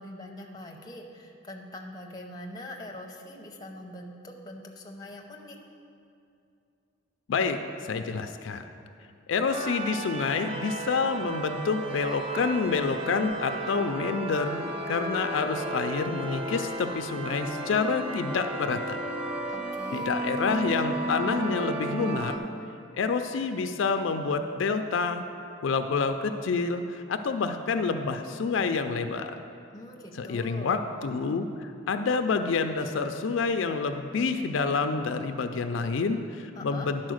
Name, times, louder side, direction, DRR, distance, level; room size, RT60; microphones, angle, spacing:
voice 1, 0.0-5.6 19.5-20.1 29.7-30.8 36.6-36.9, left 1 dB, 20° left, 1 dB, 0.7 m, -43 dB
voice 2, 7.3-8.7 9.3-19.0 19.9-22.4 22.9-25.3 25.6-29.4 30.1-37.0, left 4 dB, 75° left, 7 dB, 0.4 m, -28 dB
sound 1, 9.5-22.4, right 2 dB, 25° right, 0.4 m, -34 dB
10.5 x 4.3 x 6.3 m, 2.5 s
head